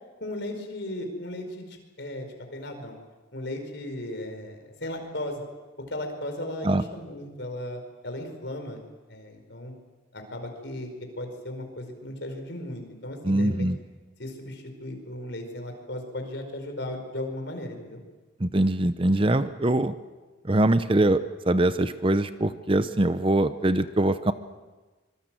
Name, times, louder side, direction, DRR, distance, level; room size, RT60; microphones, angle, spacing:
voice 1, 0.2-3.0 3.3-5.4 5.9-8.8 9.1-9.7 10.1-10.9 11.2-13.7 14.2-18.0, left 1 dB, 60° left, 5 dB, 4.9 m, -36 dB
voice 2, 13.2-13.8 18.4-19.9 20.5-24.3, right 1 dB, 25° right, 12 dB, 0.7 m, -23 dB
25.5 x 23.0 x 7.6 m, 1.3 s
head